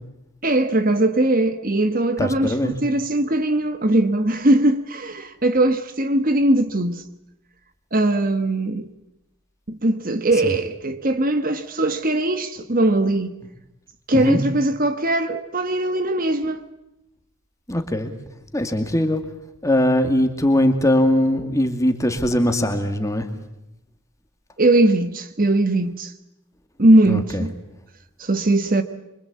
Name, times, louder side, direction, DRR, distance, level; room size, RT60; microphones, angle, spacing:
voice 1, 0.4-7.0 7.9-8.9 9.7-13.3 14.1-16.6 24.6-26.1 26.8-27.5 28.2-28.8, right 1 dB, 40° right, 1.2 m, -20 dB
voice 2, 2.2-2.7 10.4-10.5 14.1-14.4 17.7-18.1 18.5-19.2 19.6-23.3 27.0-27.5, left 1 dB, 15° left, 2.3 m, -20 dB
26.0 x 24.5 x 8.5 m
head